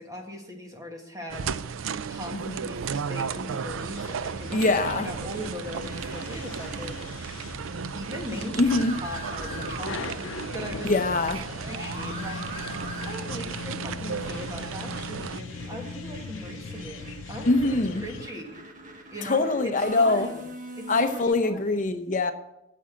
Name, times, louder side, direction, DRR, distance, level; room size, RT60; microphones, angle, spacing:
voice 1, 0.0-1.5 2.1-7.5 7.9-8.7 9.0-10.3 10.5-11.1 11.7-12.7 13.0-17.7 18.0-18.6 19.1-19.7 20.0-21.7, equal, 15° right, 1.6 m, -39 dB
sound 1, 1.3-15.4, right 6 dB, 75° right, 0.4 m, -35 dB
sound 2, 3.5-18.3, left 4 dB, 70° left, 0.6 m, -40 dB
sound 3, 4.4-10.8 11.0-21.3, right 1 dB, 40° right, 1.5 m, -43 dB
voice 2, 4.5-5.1 8.6-9.0 10.8-11.4 17.5-18.0 19.2-20.3 20.9-22.3, left 2 dB, 40° left, 0.8 m, -23 dB
8.9 x 7.7 x 7.2 m
head